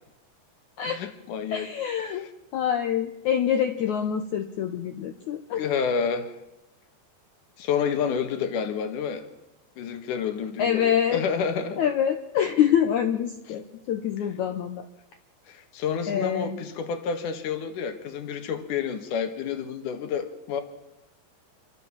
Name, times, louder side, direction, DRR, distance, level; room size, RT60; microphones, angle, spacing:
voice 1, 0.8-1.7 2.0-2.3 5.6-6.3 7.6-9.3 9.8-11.8 15.5-20.6, left 6 dB, 60° left, 8 dB, 2.8 m, -29 dB
voice 2, 1.5-2.3 2.5-5.6 10.6-11.2 11.8-14.9 16.1-16.6, left 9 dB, 85° left, 7 dB, 1.7 m, -25 dB
27.5 x 13.5 x 7.3 m, 0.95 s
omnidirectional pair, 4.7 m